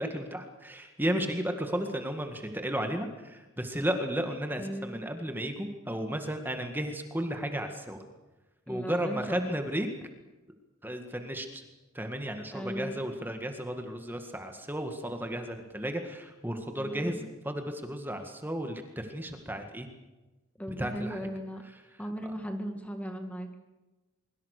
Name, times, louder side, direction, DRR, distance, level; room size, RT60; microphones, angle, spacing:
voice 1, 0.0-8.0 8.7-9.9 10.8-11.6 11.9-19.9 20.8-21.2 22.2-22.3, equal, 10° right, 5 dB, 1.9 m, -34 dB
voice 2, 4.6-5.1 8.7-9.6 12.5-13.0 16.8-17.3 20.6-21.6 22.0-23.6, equal, 5° left, 5 dB, 1.8 m, -37 dB
24.0 x 24.0 x 6.7 m, 1.1 s
head